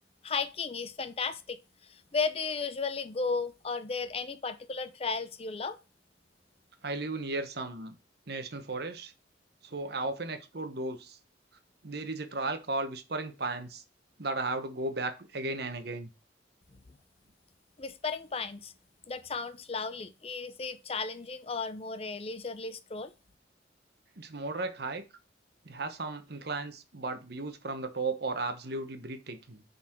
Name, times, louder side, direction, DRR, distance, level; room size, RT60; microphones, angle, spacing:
voice 1, 0.2-5.8 17.8-18.7 19.1-23.1, left 4 dB, 35° left, 0.6 m, -34 dB
voice 2, 6.8-8.0 8.3-9.1 9.6-11.2 11.8-13.8 14.2-16.1 24.2-25.0 25.6-29.6, right 3 dB, 60° right, 1.0 m, -35 dB
8.2 x 4.1 x 4.4 m
head